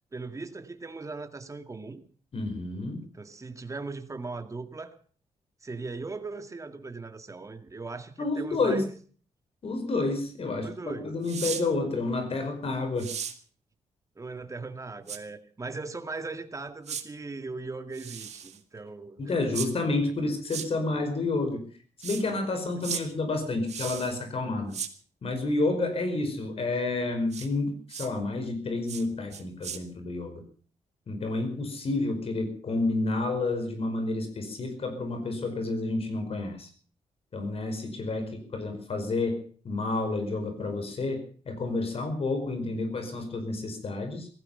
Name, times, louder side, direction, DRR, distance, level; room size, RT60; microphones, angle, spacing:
voice 1, 0.1-2.0 3.1-5.0 5.6-8.9 10.6-11.1 14.2-19.2 38.2-38.4, right 3 dB, 25° right, 9 dB, 2.1 m, -39 dB
voice 2, 2.3-3.0 8.2-8.8 9.6-13.1 19.2-21.7 22.0-24.7 25.2-30.4 31.1-36.7 37.3-44.3, left 2 dB, 55° left, 7 dB, 5.0 m, -30 dB
sound 1, 11.2-11.6 13.0-13.4 15.1-15.2 16.9-17.0 17.9-18.6 19.5-19.7 20.5-20.7 22.0-22.2 22.8-23.0 23.7-24.2 24.7-24.9 27.3-27.5 27.9-28.1 28.9-29.0 29.3-29.8, right 8 dB, 65° right, 2.0 m, -36 dB
17.0 x 15.0 x 5.6 m, 0.43 s
cardioid pair, 85°, 12 cm